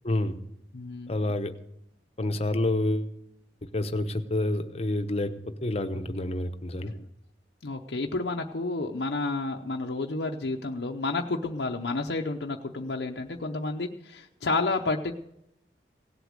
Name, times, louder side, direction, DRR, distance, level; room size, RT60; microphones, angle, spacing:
voice 1, 0.0-0.4 1.1-1.5 2.2-3.1 3.7-5.3 5.6-6.9, left 1 dB, 35° left, 8 dB, 0.9 m, -28 dB
voice 2, 0.7-1.2 6.8-7.0 7.6-15.1, left 3 dB, 70° left, 1 dB, 0.7 m, -30 dB
17.0 x 8.1 x 6.5 m, 0.77 s
head